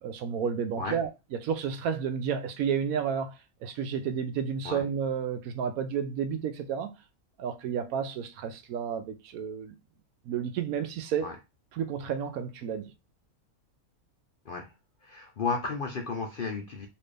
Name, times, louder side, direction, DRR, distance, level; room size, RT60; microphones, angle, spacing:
voice 1, 0.0-3.3 3.6-6.9 7.4-9.7 10.3-11.4 11.7-12.9, right 7 dB, 75° right, 1.1 m, -31 dB
voice 2, 15.0-16.9, left 4 dB, 55° left, 0.6 m, -33 dB
4.3 x 2.6 x 3.2 m
omnidirectional pair, 1.5 m